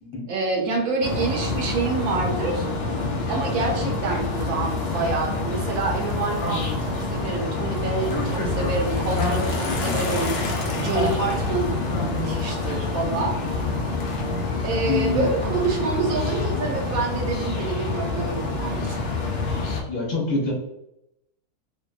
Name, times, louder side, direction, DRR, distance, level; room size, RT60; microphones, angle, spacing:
voice 1, 0.3-2.7 3.3-13.4 14.6-19.0, right 4 dB, 70° right, 1 dB, 1.0 m, -27 dB
sound 1, 1.0-19.8, left 3 dB, 85° left, 0.5 m, -26 dB
voice 2, 9.6-10.0 14.9-15.3 19.9-20.5, left 3 dB, 30° left, -5 dB, 1.0 m, -26 dB
2.7 x 2.4 x 2.3 m, 0.83 s
omnidirectional pair, 1.6 m